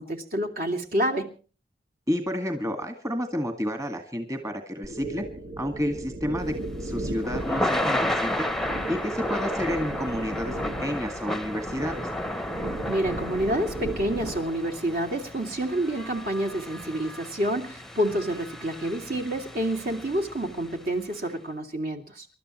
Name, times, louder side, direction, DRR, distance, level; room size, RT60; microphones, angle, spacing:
voice 1, 0.0-1.3 12.8-22.3, right 1 dB, 55° right, 4 dB, 2.8 m, -28 dB
voice 2, 2.1-5.2 5.6-6.5 6.8-8.5 8.9-12.1, equal, 20° right, 5 dB, 2.0 m, -30 dB
sound 1, 4.8-14.5, right 1 dB, 75° right, 2.0 m, -36 dB
Thunder / Rain, 6.5-20.7, left 1 dB, ahead, 0.8 m, -33 dB
28.0 x 13.0 x 3.1 m, 0.36 s
head